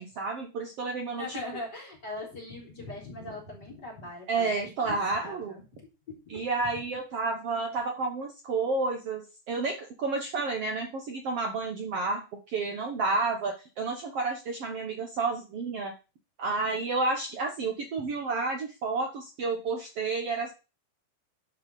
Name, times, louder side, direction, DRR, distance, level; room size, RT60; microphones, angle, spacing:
voice 1, 0.0-1.4 4.3-5.6 6.3-15.9 16.4-20.5, right 3 dB, 85° right, 3 dB, 1.3 m, -30 dB
voice 2, 1.2-6.8, left 2 dB, 25° left, -1 dB, 3.7 m, -41 dB
11.0 x 5.5 x 5.4 m, 0.31 s
omnidirectional pair, 4.6 m